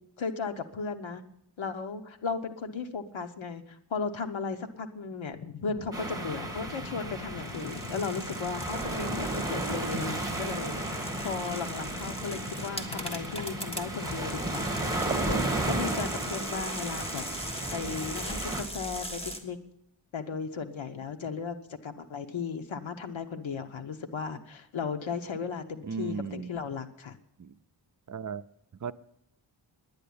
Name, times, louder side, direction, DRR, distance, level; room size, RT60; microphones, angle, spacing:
voice 1, 0.2-1.2 1.6-17.2 17.7-19.6 20.1-27.2, left 5 dB, 90° left, 1.0 m, -36 dB
sound 1, 5.3-15.3, left 7 dB, 60° left, 0.8 m, -44 dB
sound 2, 5.9-18.6, right 2 dB, 10° right, 1.9 m, -34 dB
sound 3, 7.4-19.4, equal, 15° left, 1.6 m, -40 dB
voice 2, 25.9-26.5 27.4-27.5 28.1-28.4 28.8-28.9, right 5 dB, 40° right, 0.6 m, -35 dB
10.5 x 9.9 x 8.6 m
wide cardioid pair, 115°, 45 cm